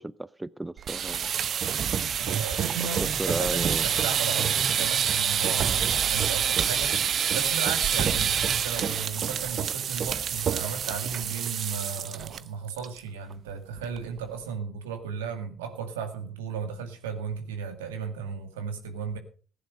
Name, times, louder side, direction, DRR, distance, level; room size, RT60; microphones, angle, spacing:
voice 1, 0.0-1.3 3.0-3.9, right 2 dB, 15° right, 0.6 m, -33 dB
sound 1, 0.8-12.4 12.7-13.0 13.3-13.4 13.8-14.2, right 8 dB, 55° right, 0.8 m, -27 dB
voice 2, 2.2-7.0 7.3-19.2, right 6 dB, 85° right, 2.1 m, -35 dB
15.5 x 10.0 x 5.3 m
hypercardioid pair, 50°, 0 cm